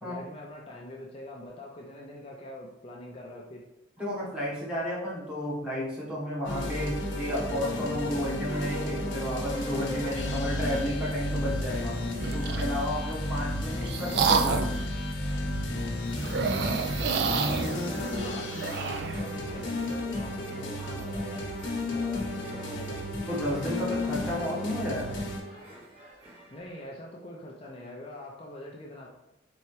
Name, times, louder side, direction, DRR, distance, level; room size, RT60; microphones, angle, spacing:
voice 1, 0.0-3.6 16.5-21.5 21.9-23.0 26.5-29.1, left 1 dB, 30° left, -3 dB, 0.4 m, -43 dB
voice 2, 4.0-12.0 12.3-14.7 23.3-25.2, equal, 5° right, -6 dB, 1.2 m, -32 dB
sound 1, 6.4-25.4, left 1 dB, 80° left, 0.9 m, -32 dB
sound 2, 12.1-12.7 13.4-14.8 16.2-19.2, right 5 dB, 60° right, 0.3 m, -29 dB
sound 3, 18.8-26.8, right 1 dB, 30° right, 1.0 m, -49 dB
4.2 x 3.4 x 3.1 m, 0.94 s
head